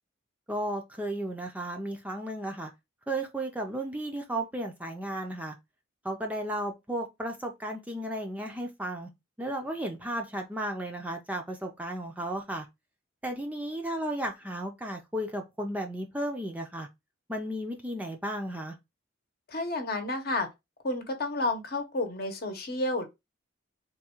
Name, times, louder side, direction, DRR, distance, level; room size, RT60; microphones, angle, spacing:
voice 1, 0.5-2.7 3.1-5.6 6.0-9.1 9.4-12.7 13.2-16.9 17.3-18.7, right 1 dB, 10° right, 0.5 m, -34 dB
voice 2, 19.5-20.5 20.8-23.1, left 2 dB, 55° left, 0.9 m, -30 dB
3.6 x 2.3 x 4.3 m
head